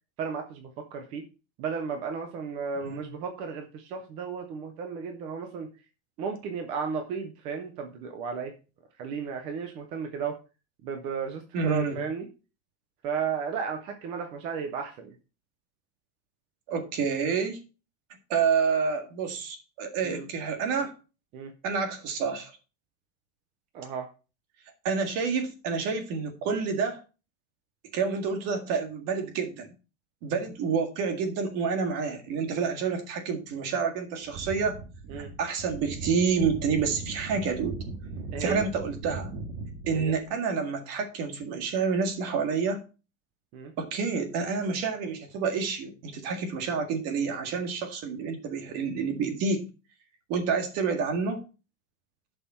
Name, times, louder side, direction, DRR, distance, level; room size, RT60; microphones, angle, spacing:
voice 1, 0.2-1.3 1.6-5.7 6.2-8.5 9.0-10.4 10.8-12.3 13.0-15.1 20.0-20.3 21.3-21.5 23.7-24.1 35.1-35.3 38.3-38.7 39.9-40.2 43.5-43.7, right 6 dB, 15° right, 5 dB, 0.3 m, -34 dB
voice 2, 11.5-12.0 16.7-17.6 18.3-20.9 21.6-22.5 24.8-27.0 27.9-29.7 30.2-34.8 35.4-37.8 38.4-39.3 39.9-42.8 43.8-49.7 50.3-51.4, right 5 dB, 35° right, 5 dB, 1.9 m, -28 dB
sound 1, 34.2-40.3, right 3 dB, 65° right, 2.1 m, -38 dB
11.0 x 5.5 x 4.3 m, 0.33 s
supercardioid pair, 170°, 41 cm